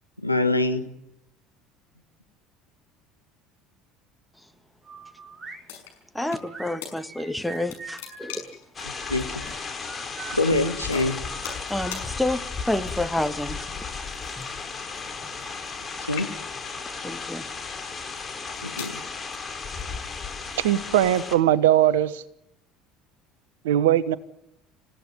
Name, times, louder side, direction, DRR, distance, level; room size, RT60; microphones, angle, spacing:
voice 1, 0.2-0.9 8.8-9.3 10.3-11.2 16.0-16.3 18.6-19.0, left 2 dB, 90° left, 7 dB, 1.4 m, -24 dB
sound 1, 4.8-5.6 6.3-8.4 8.9-10.7 11.3-13.1, right 3 dB, 20° right, 5.5 m, -43 dB
sound 2, 5.7-6.5 6.8-6.9 7.4-8.7 9.5-9.6 10.5-10.6 10.9-11.7 11.9-12.1 12.8-13.2 14.2-15.8 16.1-16.7 17.4-17.6 18.3-19.0, left 8 dB, 65° left, 5.9 m, -39 dB
voice 2, 6.1-8.6 11.7-13.7 14.4-14.5 17.0-17.4, left 1 dB, 5° left, 9 dB, 1.7 m, -29 dB
sound 3, 8.7-21.3, left 5 dB, 25° left, 4.0 m, -35 dB
voice 3, 20.6-22.2 23.6-24.2, right 12 dB, 65° right, 18 dB, 1.1 m, -20 dB
27.5 x 16.0 x 9.3 m, 0.83 s
figure-of-eight pair, 65°, 0 cm